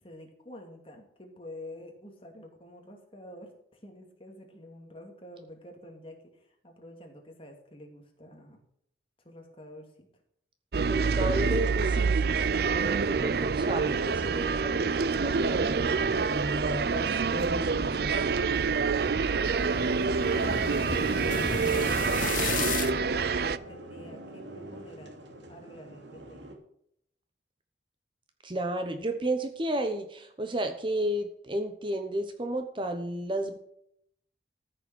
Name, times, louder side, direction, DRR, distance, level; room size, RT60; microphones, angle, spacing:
voice 1, 0.0-8.6 9.2-10.2 19.6-22.3 22.9-25.1 25.5-26.6, left 1 dB, 30° left, 2 dB, 2.5 m, -48 dB
sound 1, 10.7-23.6, right 5 dB, 55° right, 0.5 m, -27 dB
voice 2, 10.9-18.3 28.4-33.6, right 1 dB, 25° right, 6 dB, 0.9 m, -33 dB
sound 2, 10.9-26.6, right 2 dB, 80° right, 2.6 m, -49 dB
sound 3, 15.3-22.9, left 5 dB, 45° left, 0.8 m, -37 dB
14.0 x 6.8 x 6.1 m, 0.71 s
head